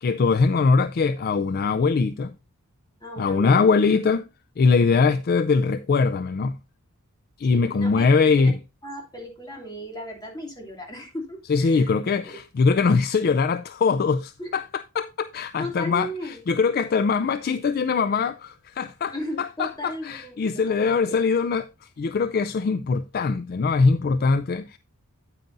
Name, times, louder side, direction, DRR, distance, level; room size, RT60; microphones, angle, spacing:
voice 1, 0.0-2.3 3.2-4.2 4.6-6.6 7.4-8.6 11.5-14.6 15.0-21.7 22.0-24.8, left 4 dB, 45° left, 0.3 m, -22 dB
voice 2, 3.0-3.6 7.5-8.5 8.8-11.9 12.2-12.4 14.4-14.5 15.6-16.7 19.1-20.4 20.7-21.0, equal, 20° left, 2.6 m, -36 dB
9.0 x 9.0 x 2.6 m
head